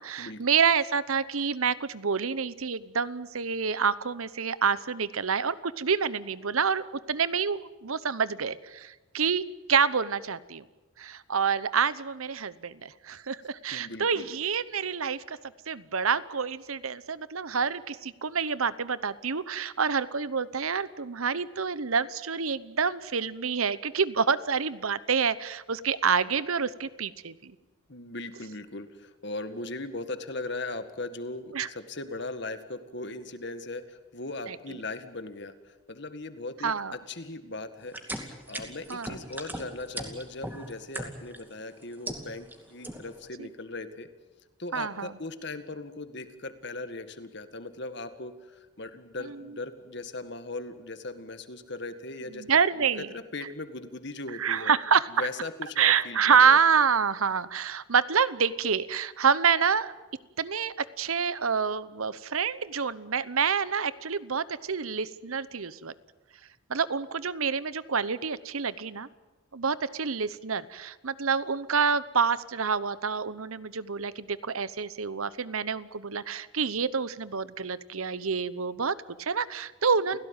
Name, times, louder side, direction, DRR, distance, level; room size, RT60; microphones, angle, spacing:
voice 1, 0.0-10.6 11.0-15.4 15.7-27.5 31.5-31.7 34.5-34.6 36.6-36.9 38.9-39.1 43.4-43.5 44.7-45.1 49.3-49.4 52.4-53.1 54.4-55.1 55.8-59.9 60.4-65.9 66.7-69.1 69.5-80.2, right 6 dB, 80° right, 17 dB, 1.0 m, -27 dB
voice 2, 13.7-14.3 27.9-37.9 38.2-44.1 44.6-52.4 52.8-54.7 55.1-56.6 80.1-80.2, left 2 dB, 55° left, 10 dB, 1.9 m, -39 dB
sound 1, 37.9-41.4 41.8-42.5 42.8-43.2, right 1 dB, 10° right, 2.5 m, -37 dB
29.5 x 17.0 x 9.0 m, 1.2 s
head